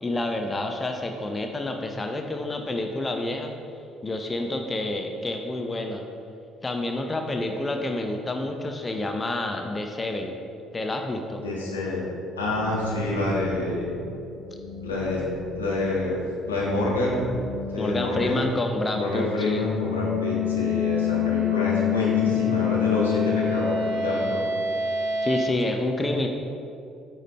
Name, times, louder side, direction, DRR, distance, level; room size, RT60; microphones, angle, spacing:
voice 1, 0.0-3.5 4.0-6.0 6.6-10.4 10.7-11.4 17.8-19.7 25.2-26.3, left 2 dB, 25° left, 4 dB, 0.6 m, -28 dB
voice 2, 11.4-12.1 12.4-13.8 14.8-15.2 15.5-16.2 16.4-17.2 17.7-18.4 18.9-24.4, left 2 dB, 80° left, -5 dB, 1.4 m, -27 dB
sound 1, 12.4-17.8, left 3 dB, 60° left, 1.1 m, -38 dB
sound 2, 19.2-25.5, left 7 dB, 70° right, 0.8 m, -26 dB
8.9 x 4.9 x 4.3 m, 2.7 s
figure-of-eight pair, 50°, 0 cm